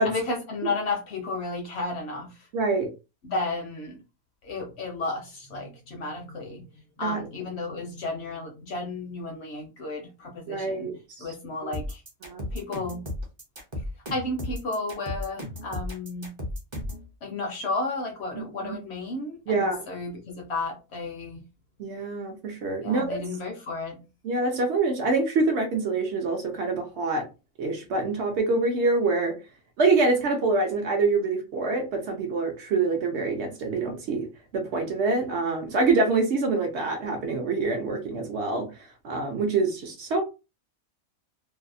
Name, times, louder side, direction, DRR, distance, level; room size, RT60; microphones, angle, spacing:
voice 1, 0.0-2.5 3.2-4.0 4.4-6.7 7.0-10.9 11.2-12.0 12.5-13.0 14.1-16.3 17.2-21.4 22.8-24.0, left 3 dB, 65° left, 2 dB, 0.7 m, -33 dB
voice 2, 2.5-2.9 7.0-7.2 10.5-11.3 12.2-12.4 18.4-18.8 19.5-19.8 21.8-23.2 24.2-27.2 27.6-29.3 29.8-34.3 34.5-38.7 39.0-40.2, right 3 dB, 65° right, 3 dB, 0.8 m, -25 dB
sound 1, 11.7-17.1, left 1 dB, 30° right, 0.5 m, -34 dB
2.6 x 2.0 x 2.4 m, 0.29 s
omnidirectional pair, 1.4 m